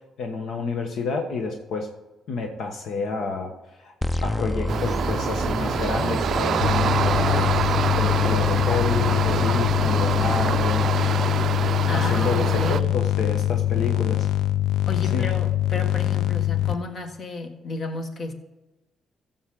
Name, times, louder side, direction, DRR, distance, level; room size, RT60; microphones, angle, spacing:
voice 1, 0.2-1.9 2.3-3.5 3.8-3.9 4.2-7.5 8.0-10.9 11.9-14.3 15.0-15.3, left 4 dB, 70° left, 3 dB, 1.2 m, -29 dB
sound 1, 4.0-10.9, left 1 dB, 10° left, 0.5 m, -29 dB
sound 2, 4.7-12.8, right 8 dB, 60° right, 0.4 m, -26 dB
sound 3, 6.6-16.8, left 13 dB, 85° left, 0.5 m, -23 dB
voice 2, 11.9-12.9 14.9-18.3, left 3 dB, 50° left, 5 dB, 1.7 m, -32 dB
14.5 x 7.4 x 3.8 m, 1.1 s
cardioid pair, 100°, 0 cm